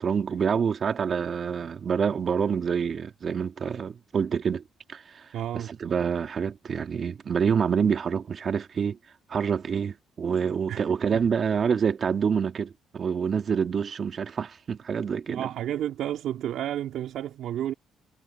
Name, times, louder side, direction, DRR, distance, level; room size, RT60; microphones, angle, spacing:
voice 1, 0.0-4.6 4.9-5.3 5.5-9.0 9.3-15.5, right 6 dB, 50° right, 2.2 m, -27 dB
voice 2, 5.3-5.7 10.7-10.8 11.1-11.2 15.3-17.7, right 11 dB, 75° right, 2.6 m, -31 dB
cardioid pair, 80°, 0 cm